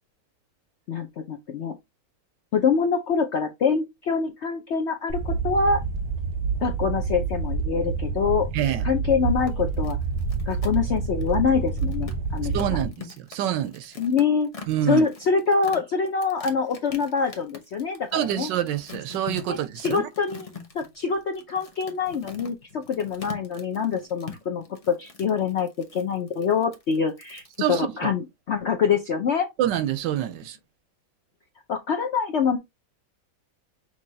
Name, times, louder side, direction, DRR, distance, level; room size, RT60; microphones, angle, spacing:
voice 1, 0.9-1.7 2.5-5.8 6.6-8.5 8.8-10.0 10.5-12.8 14.0-14.5 14.9-18.5 19.5-19.6 19.8-20.5 20.7-27.4 27.7-29.5 31.7-32.6, left 5 dB, 70° left, 0.6 m, -25 dB
sound 1, 5.1-12.9, right 4 dB, 40° right, 0.8 m, -28 dB
voice 2, 8.5-8.9 12.5-13.9 14.7-15.0 18.1-20.0 27.6-27.9 29.6-30.6, right 11 dB, 90° right, 1.3 m, -26 dB
sound 2, 9.3-27.7, left 5 dB, 30° left, 0.7 m, -43 dB
6.1 x 2.9 x 2.7 m
omnidirectional pair, 1.9 m